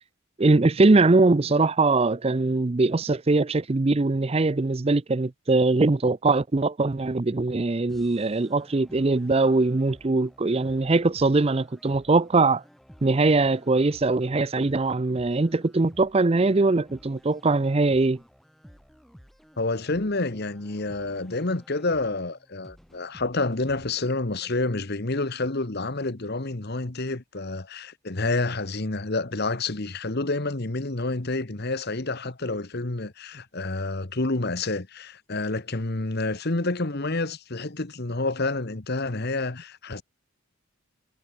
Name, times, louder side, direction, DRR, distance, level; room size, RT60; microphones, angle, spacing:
voice 1, 0.4-12.6 13.0-18.2, right 3 dB, 25° right, 0.5 m, -21 dB
sound 1, 7.9-23.9, equal, ahead, 4.7 m, -53 dB
voice 2, 19.6-40.0, left 2 dB, 45° left, 1.3 m, -28 dB
head